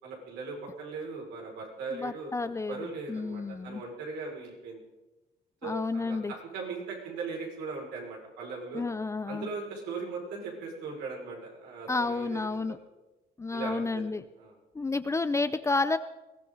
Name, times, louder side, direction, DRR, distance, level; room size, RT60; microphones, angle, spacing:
voice 1, 0.0-2.3 2.7-4.8 5.6-8.8 9.3-12.8 13.5-14.1 14.4-14.6, right 4 dB, 90° right, -1 dB, 5.7 m, -39 dB
voice 2, 1.9-3.8 5.6-6.3 8.7-9.5 11.9-12.8 13.4-14.2 14.7-16.0, left 3 dB, 15° left, 12 dB, 0.6 m, -31 dB
22.0 x 15.5 x 4.0 m, 1.0 s
cardioid pair, 110°, 17 cm